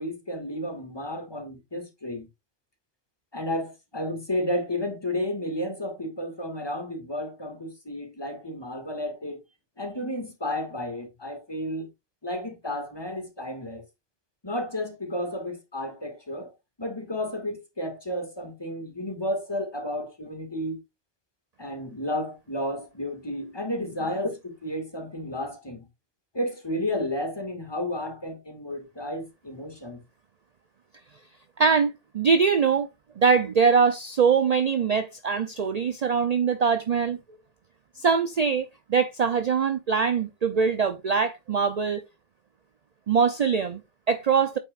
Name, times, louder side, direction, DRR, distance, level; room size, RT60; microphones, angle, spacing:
voice 1, 0.0-2.3 3.3-9.4 9.8-11.9 12.2-13.8 14.4-16.5 16.8-20.8 21.6-25.9 26.3-30.0, left 1 dB, 25° left, 1.9 m, -32 dB
voice 2, 31.6-32.9 33.2-37.2 38.0-42.0 43.1-44.6, right 6 dB, 45° right, 0.6 m, -23 dB
8.5 x 6.0 x 2.4 m
omnidirectional pair, 1.1 m